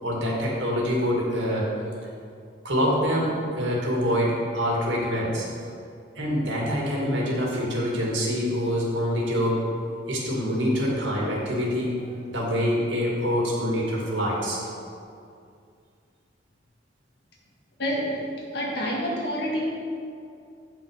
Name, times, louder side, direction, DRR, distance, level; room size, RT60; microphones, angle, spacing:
voice 1, 0.0-1.7 2.6-5.5 6.2-9.6 10.1-14.6, equal, 75° right, -3 dB, 2.1 m, -25 dB
voice 2, 17.8-18.2 18.5-19.7, equal, 60° left, -3 dB, 1.8 m, -27 dB
8.8 x 6.0 x 5.0 m, 2.4 s
head